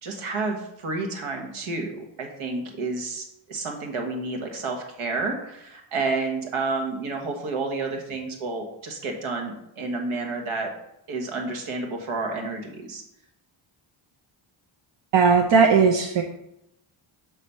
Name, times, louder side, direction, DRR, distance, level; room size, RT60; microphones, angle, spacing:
voice 1, 0.0-10.7 11.1-13.0, right 3 dB, 75° right, 2 dB, 1.6 m, -30 dB
voice 2, 15.1-16.2, right 5 dB, 60° right, 2 dB, 0.9 m, -17 dB
7.5 x 3.2 x 5.6 m, 0.81 s
cardioid pair, 80°, 50 cm